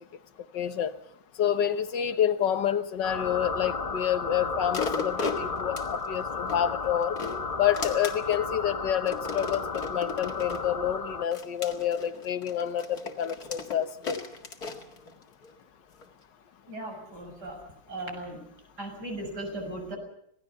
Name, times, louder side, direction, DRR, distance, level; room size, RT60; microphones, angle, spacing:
voice 1, 0.5-0.9 1.4-7.2 7.6-14.2, left 9 dB, 80° left, 10 dB, 1.8 m, -28 dB
sound 1, 3.0-11.3, left 4 dB, 35° left, 0.6 m, -34 dB
sound 2, 4.7-6.6 7.0-8.5 9.1-10.7 11.3-15.5 16.0-16.1, left 4 dB, 60° left, 2.5 m, -36 dB
voice 2, 16.7-17.6 17.9-18.4 18.8-20.0, right 1 dB, 65° right, 3 dB, 7.3 m, -37 dB
27.0 x 18.0 x 6.9 m, 0.69 s
omnidirectional pair, 1.9 m